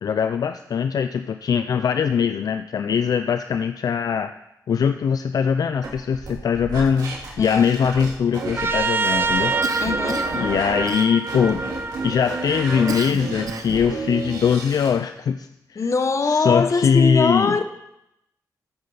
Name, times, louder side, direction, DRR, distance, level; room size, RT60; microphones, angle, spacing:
voice 1, 0.0-4.3 4.7-9.5 10.3-11.6 12.0-15.8 16.3-17.6, left 7 dB, 70° left, 10 dB, 0.4 m, -21 dB
sound 1, 5.8-8.8 9.0-10.9 11.2-15.0, right 3 dB, 80° right, 3.1 m, -31 dB
Trumpet, 8.6-13.1, right 4 dB, 35° right, 0.6 m, -26 dB
Cough, 9.6-10.4 10.9-11.5 12.9-13.9, right 5 dB, 65° right, 1.0 m, -33 dB
voice 2, 9.8-10.3 15.7-17.6, left 4 dB, 45° left, 10 dB, 0.9 m, -22 dB
14.0 x 8.7 x 4.0 m, 0.85 s
cardioid pair, 85°, 7 cm